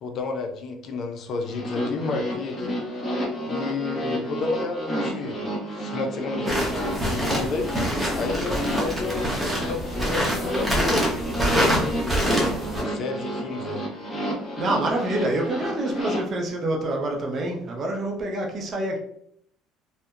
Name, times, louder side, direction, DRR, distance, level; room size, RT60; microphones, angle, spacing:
voice 1, 0.0-2.9 3.5-5.4 5.7-7.7 8.1-9.3 9.6-12.2 12.8-13.8, left 3 dB, 50° left, 0.4 m, -31 dB
sound 1, 1.4-16.2, equal, 20° left, 0.9 m, -30 dB
sound 2, 6.5-12.8, equal, 5° right, 0.8 m, -26 dB
voice 2, 14.6-19.0, right 1 dB, 40° right, 0.5 m, -26 dB
2.7 x 2.1 x 2.4 m
cardioid pair, 115°, 0 cm